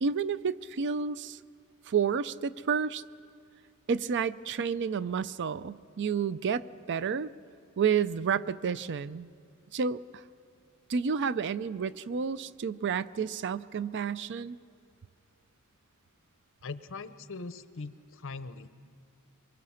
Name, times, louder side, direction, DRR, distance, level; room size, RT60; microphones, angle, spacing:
voice 1, 0.0-1.4 1.9-3.0 3.9-7.3 7.8-9.3 9.7-10.2 10.9-14.6, right 6 dB, 55° right, 16 dB, 0.4 m, -30 dB
voice 2, 16.6-18.7, left 3 dB, 60° left, 13 dB, 0.8 m, -41 dB
24.0 x 23.5 x 5.7 m, 2.3 s
head